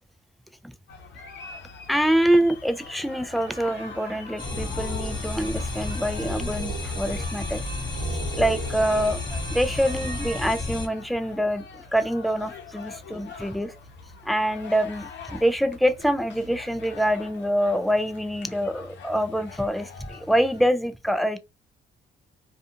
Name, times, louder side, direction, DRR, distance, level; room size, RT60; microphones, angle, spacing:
sound 1, 0.9-20.7, left 5 dB, 65° left, 0.7 m, -45 dB
voice 1, 1.9-7.6 8.3-13.7 14.2-21.4, equal, ahead, 0.3 m, -25 dB
sound 2, 3.2-11.1, right 5 dB, 55° right, 0.9 m, -40 dB
sound 3, 4.4-10.9, left 3 dB, 20° left, 0.9 m, -31 dB
2.4 x 2.3 x 2.7 m
cardioid pair, 90°, 20 cm